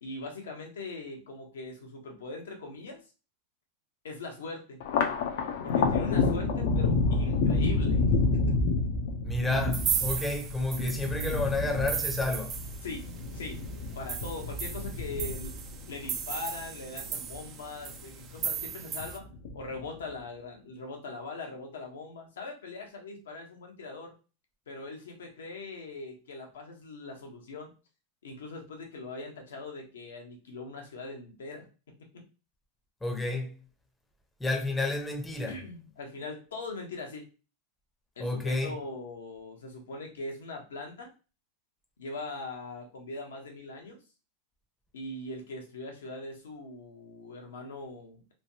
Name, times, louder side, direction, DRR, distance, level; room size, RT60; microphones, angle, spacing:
voice 1, 0.0-3.0 4.0-4.8 5.6-8.6 12.8-13.1 13.3-13.6 13.9-15.5 15.8-19.3 19.5-24.1 24.7-27.7 28.2-31.7 35.5-37.3 38.2-41.1 42.0-44.0 44.9-48.3, left 3 dB, 85° left, 0.9 m, -41 dB
Thunder, 4.8-17.5 17.9-18.7 19.0-19.9, left 3 dB, 70° left, 0.6 m, -29 dB
voice 2, 9.2-12.6 33.0-33.6 34.4-35.6 38.2-38.8, left 2 dB, 10° left, 0.7 m, -30 dB
sound 1, 9.7-13.2 13.5-13.6 13.9-19.2, right 8 dB, 35° right, 0.4 m, -36 dB
3.2 x 2.2 x 2.7 m
hypercardioid pair, 110°, 0 cm